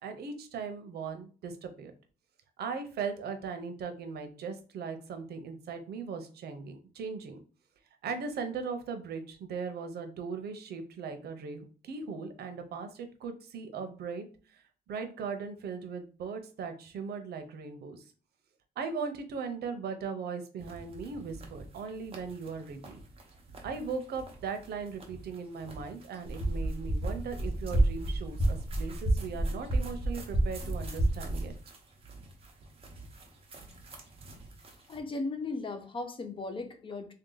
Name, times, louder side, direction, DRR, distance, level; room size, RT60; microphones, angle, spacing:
voice 1, 0.0-1.9 2.6-7.4 8.0-14.3 14.5-14.6 14.9-18.0 18.8-23.0 23.6-31.5, right 5 dB, 85° right, 7 dB, 0.7 m, -38 dB
sound 1, 20.6-35.0, right 2 dB, 35° right, 0.9 m, -49 dB
sound 2, 26.2-31.5, right 1 dB, 5° left, 1.1 m, -29 dB
voice 2, 34.9-37.1, left 3 dB, 30° left, 7 dB, 0.6 m, -36 dB
3.3 x 2.8 x 3.8 m, 0.38 s
wide cardioid pair, 145°, 16 cm